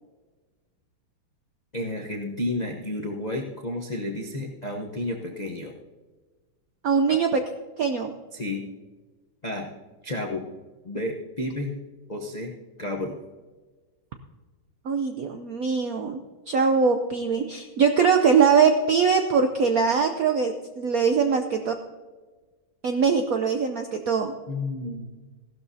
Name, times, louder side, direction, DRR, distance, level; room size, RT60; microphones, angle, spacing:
voice 1, 1.7-5.7 7.1-7.2 8.3-8.6 9.4-9.7 10.0-10.5 10.8-11.7 12.1-13.2 24.5-25.1, left 1 dB, 60° left, 0 dB, 0.4 m, -31 dB
voice 2, 6.8-7.4 7.8-8.1 14.8-16.2 16.5-21.7 22.8-24.3, right 5 dB, 75° right, 6 dB, 0.8 m, -22 dB
16.0 x 12.0 x 2.7 m, 1.3 s
omnidirectional pair, 2.4 m